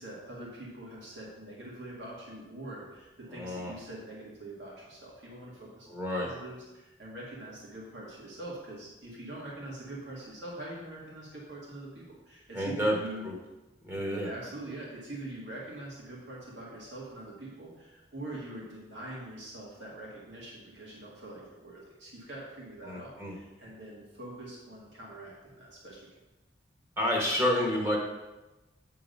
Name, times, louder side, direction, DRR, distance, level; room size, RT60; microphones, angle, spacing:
voice 1, 0.0-13.3 13.9-26.1, right 1 dB, 75° right, -5 dB, 1.9 m, -44 dB
voice 2, 3.3-3.7 5.9-6.3 12.5-13.0 13.2-13.3 13.8-14.3 22.8-23.4 27.0-28.0, equal, 15° right, -1 dB, 1.1 m, -29 dB
8.1 x 3.8 x 5.3 m, 1.1 s
head